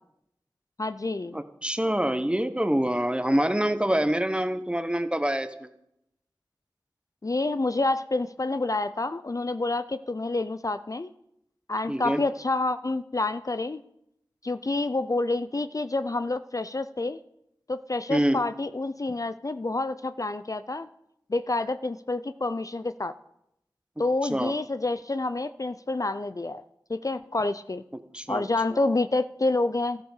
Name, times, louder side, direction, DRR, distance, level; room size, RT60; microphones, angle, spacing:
voice 1, 0.8-1.4 7.2-11.1 11.7-13.8 14.4-17.2 17.7-20.9 21.3-23.1 24.0-26.6 26.9-27.8 28.3-30.0, left 2 dB, 45° left, 12 dB, 0.5 m, -28 dB
voice 2, 1.3-5.7 11.9-12.2 18.1-18.4 24.3-24.5 28.1-28.4 28.7-28.8, right 1 dB, 15° right, 10 dB, 1.0 m, -26 dB
13.0 x 8.3 x 6.5 m, 0.79 s
wide cardioid pair, 50°, 8 cm